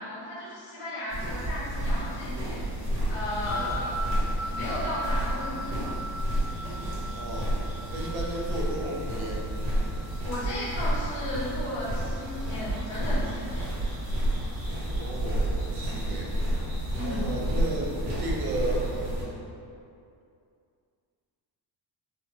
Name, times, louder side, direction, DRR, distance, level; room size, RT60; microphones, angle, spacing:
voice 1, 0.0-2.6 3.1-4.0 4.4-6.0 10.2-13.7 16.9-17.3, left 1 dB, 90° left, -9 dB, 1.4 m, -35 dB
sound 1, 1.1-19.2, right 1 dB, 85° right, 1.4 m, -30 dB
sound 2, 3.5-12.7, equal, 65° left, 0.5 m, -40 dB
voice 2, 3.5-3.8 7.1-7.5 7.9-9.5 14.8-16.3 17.0-17.9 18.2-18.9, right 1 dB, 60° right, -2 dB, 0.7 m, -34 dB
4.4 x 2.3 x 2.7 m, 2.5 s
cardioid pair, 175°, 42 cm